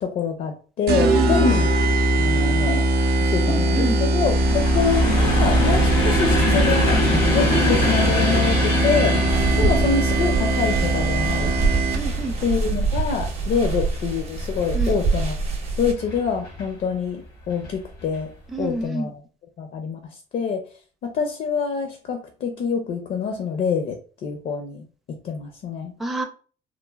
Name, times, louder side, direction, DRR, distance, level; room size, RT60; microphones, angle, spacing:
voice 1, 0.0-1.7 2.2-2.8 3.2-7.0 7.3-9.1 9.6-11.6 12.4-15.4 15.8-18.3 18.6-19.2 19.6-20.0 20.3-20.6 21.0-23.9 24.2-25.9, left 6 dB, 55° left, 5 dB, 0.5 m, -26 dB
sound 1, 0.9-12.3, right 1 dB, 75° right, 0.4 m, -21 dB
voice 2, 1.1-1.7 3.5-4.0 9.5-9.7 11.9-12.3 14.7-15.0 18.5-19.1 26.0-26.2, right 2 dB, ahead, 2 dB, 0.4 m, -27 dB
sound 2, 4.2-15.3 16.0-16.6 17.5-17.7 18.0-18.2, equal, 85° left, 1.0 m, -25 dB
sound 3, 9.3-15.9, right 4 dB, 40° right, 0.7 m, -25 dB
3.1 x 2.0 x 2.3 m, 0.39 s
cardioid pair, 110°, 17 cm